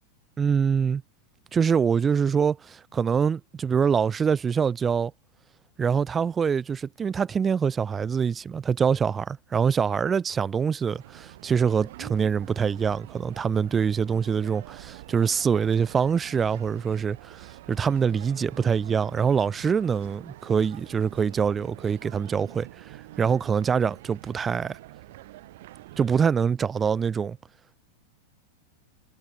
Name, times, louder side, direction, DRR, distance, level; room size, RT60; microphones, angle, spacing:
voice 1, 0.4-1.0 1.5-5.1 5.8-22.7 23.2-24.8 26.0-27.4, right 6 dB, 20° right, 0.3 m, -24 dB
sound 1, 10.9-26.2, right 17 dB, 55° right, 2.2 m, -46 dB
figure-of-eight pair, 90°, 0 cm